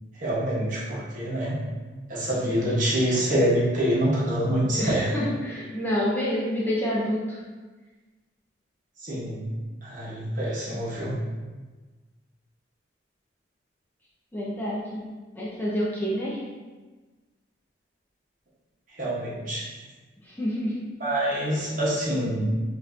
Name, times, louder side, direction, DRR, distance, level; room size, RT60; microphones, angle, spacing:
voice 1, 0.2-1.6 2.1-5.1 9.0-9.5 9.8-11.2 19.0-19.7 21.0-22.4, right 1 dB, 45° right, -7 dB, 1.1 m, -26 dB
voice 2, 4.7-7.4 14.3-15.0 15.4-16.4 20.4-20.8, equal, 10° left, -6 dB, 0.5 m, -28 dB
5.3 x 2.6 x 2.7 m, 1.3 s
head